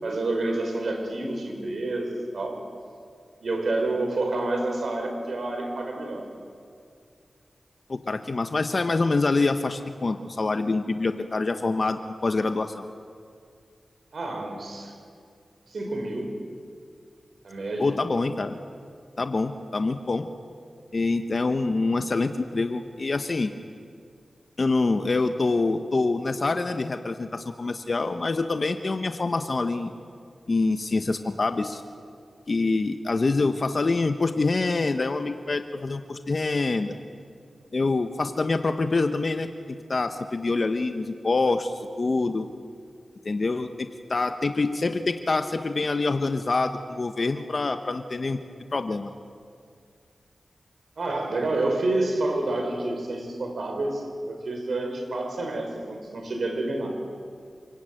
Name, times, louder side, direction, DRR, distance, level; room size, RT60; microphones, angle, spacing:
voice 1, 0.0-2.7 3.4-6.3 14.1-15.0 15.7-16.3 17.4-17.9 51.0-56.9, right 2 dB, 75° right, 4 dB, 5.0 m, -28 dB
voice 2, 7.9-12.8 17.8-18.6 19.2-20.3 20.9-23.5 24.6-29.9 30.5-31.8 32.5-37.0 37.7-42.5 43.2-48.4 48.7-49.1, left 3 dB, 55° left, 7 dB, 1.1 m, -26 dB
27.5 x 16.0 x 9.1 m, 2.2 s
cardioid pair, 40°, 0 cm